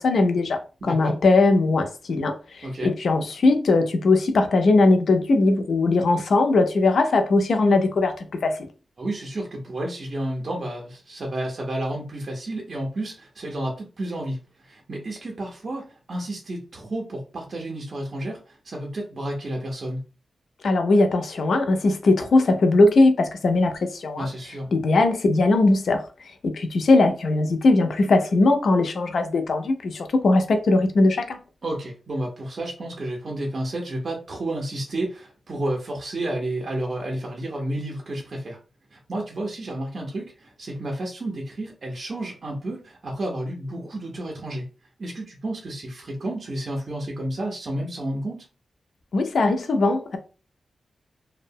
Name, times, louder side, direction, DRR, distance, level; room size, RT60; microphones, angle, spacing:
voice 1, 0.0-8.6 20.6-24.3 24.7-26.0 26.4-31.4 49.1-50.2, left 2 dB, 60° left, 0.4 m, -20 dB
voice 2, 0.8-1.2 2.6-2.9 9.0-20.0 24.2-24.7 31.6-38.6 38.9-44.7 45.0-48.5, right 1 dB, 40° right, 0.5 m, -31 dB
2.7 x 2.1 x 2.6 m
wide cardioid pair, 175°, 0 cm